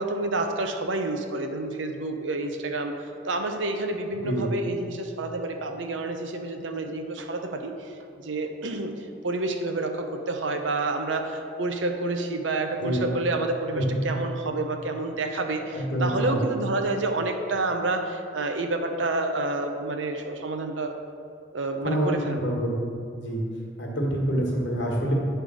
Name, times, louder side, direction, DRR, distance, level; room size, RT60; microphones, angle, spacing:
voice 1, 0.0-21.0 21.5-22.5, right 2 dB, 80° right, 5 dB, 0.7 m, -29 dB
voice 2, 13.7-14.1 15.7-16.4 21.8-22.8 23.1-23.4 23.8-25.1, right 1 dB, 65° left, -2 dB, 1.5 m, -26 dB
9.2 x 3.4 x 6.1 m, 2.4 s
head